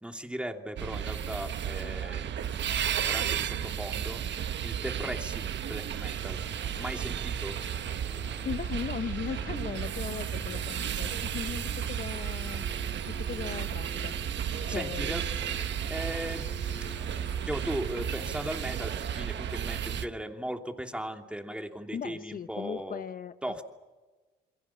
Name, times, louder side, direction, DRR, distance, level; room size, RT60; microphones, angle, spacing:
voice 1, 0.0-2.4 3.0-4.2 4.6-6.4 6.7-7.6 14.7-15.2 15.9-16.5 17.5-23.0 23.4-23.6, right 1 dB, 5° right, 4 dB, 2.8 m, -37 dB
sound 1, 0.8-20.1, right 9 dB, 65° right, 1.3 m, -33 dB
sound 2, 5.7-20.1, left 2 dB, 10° left, 2.7 m, -48 dB
voice 2, 8.4-12.6 13.1-14.2 14.7-15.2 21.9-23.3, left 7 dB, 45° left, 10 dB, 0.9 m, -38 dB
28.0 x 23.0 x 7.2 m, 1.3 s
cardioid pair, 90°, 20 cm